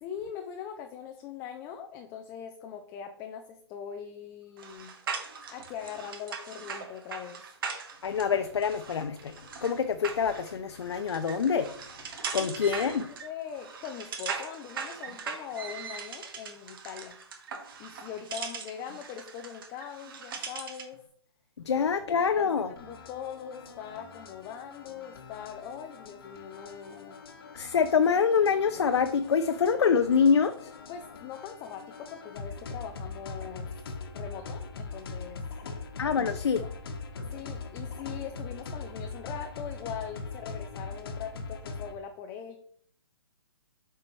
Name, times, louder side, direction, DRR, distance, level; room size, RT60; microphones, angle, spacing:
voice 1, 0.0-4.9 5.5-7.4 12.4-17.2 17.8-21.0 21.7-21.8 22.3-27.2 30.9-33.8 34.1-35.4 36.0-36.2 36.6-36.7 37.3-42.6, left 8 dB, 15° left, 0.3 m, -41 dB
sound 1, 4.6-21.0, right 6 dB, 50° right, 1.2 m, -40 dB
voice 2, 8.0-9.3 9.6-11.7 12.3-13.0 21.7-22.7 27.5-30.7 36.0-36.6, left 6 dB, 75° left, 0.5 m, -25 dB
sound 2, 22.8-42.0, left 3 dB, 55° left, 1.1 m, -41 dB
7.5 x 4.7 x 3.0 m
hypercardioid pair, 140°, 14 cm